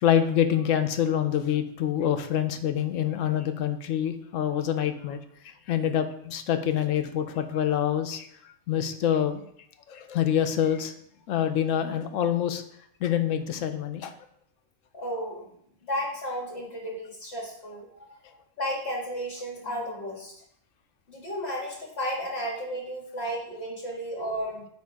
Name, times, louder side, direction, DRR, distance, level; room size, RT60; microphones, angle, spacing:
voice 1, 0.0-5.2 5.7-8.3 8.7-9.4 9.9-10.9 11.3-12.6 13.0-14.1, left 9 dB, 90° left, 8 dB, 1.0 m, -26 dB
voice 2, 14.9-18.2 18.6-20.4 21.1-24.7, equal, 55° left, -2 dB, 2.2 m, -33 dB
8.2 x 2.8 x 4.7 m, 0.70 s
omnidirectional pair, 1.3 m